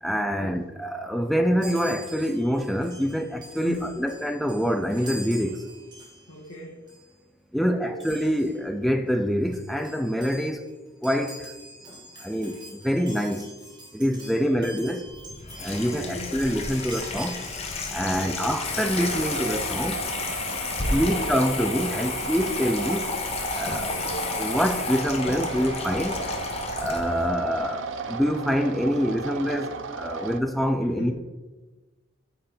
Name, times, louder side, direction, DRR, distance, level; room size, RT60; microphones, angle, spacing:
voice 1, 0.0-5.7 7.5-10.7 11.0-11.5 12.2-13.5 13.9-15.0 15.6-17.4 17.9-20.0 20.9-23.1 23.5-23.9 24.4-26.2 26.8-31.1, equal, ahead, 6 dB, 0.3 m, -26 dB
Chime, 1.6-6.6 6.9-7.1 8.0-8.6 9.2-9.3 9.4-18.4 18.8-20.0, right 1 dB, 20° right, 1.5 m, -45 dB
voice 2, 3.6-4.1 6.3-6.9 7.6-7.9 14.3-14.8 15.8-16.3 18.1-18.5 20.7-21.2 23.7-24.3 30.8-31.1, left 1 dB, 75° left, -4 dB, 1.1 m, -40 dB
Water tap faucet / Sink (filling or washing), 15.1-27.3, left 3 dB, 30° left, 0.7 m, -31 dB
sound 1, 18.7-30.4, right 5 dB, 65° right, 0.4 m, -35 dB
8.8 x 3.9 x 4.3 m, 1.2 s
head